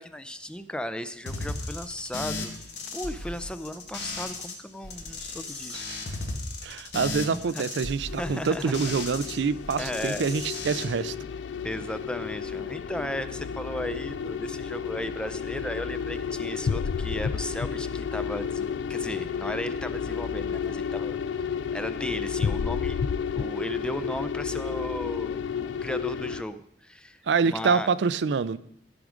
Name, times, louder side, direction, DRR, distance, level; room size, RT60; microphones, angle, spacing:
voice 1, 0.0-2.6 2.9-5.9 7.5-7.6 8.2-8.7 9.8-10.2 11.6-21.2 21.7-23.0 23.3-27.9, equal, 5° left, 11 dB, 0.4 m, -35 dB
sound 1, 1.3-4.5 4.8-9.3 9.6-10.8, left 3 dB, 70° left, 1.8 m, -36 dB
voice 2, 5.7-6.0 6.6-11.1 27.3-28.6, right 5 dB, 75° right, 16 dB, 0.4 m, -26 dB
sound 2, 8.1-26.4, left 6 dB, 90° left, 0.4 m, -32 dB
14.0 x 6.2 x 5.0 m, 0.71 s
head